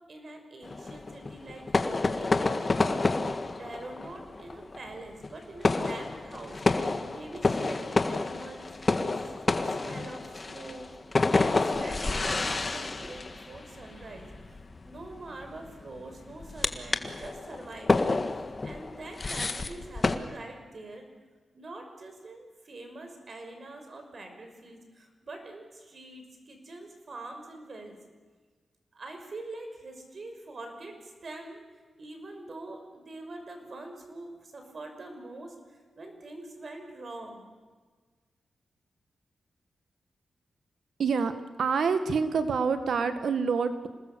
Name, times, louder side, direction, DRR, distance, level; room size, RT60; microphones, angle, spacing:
voice 1, 0.1-2.5 3.5-6.6 7.0-8.7 9.5-10.9 11.4-14.3 14.8-18.1 18.6-21.1 21.5-28.0 28.9-31.6 32.0-35.5 36.0-37.5, right 2 dB, 55° right, 5 dB, 5.8 m, -44 dB
sound 1, 0.6-20.2, left 3 dB, 40° left, 1.7 m, -29 dB
voice 2, 41.0-41.3 41.6-43.9, right 5 dB, 80° right, 9 dB, 1.7 m, -26 dB
27.0 x 19.5 x 7.0 m, 1.4 s
cardioid pair, 65°, 0 cm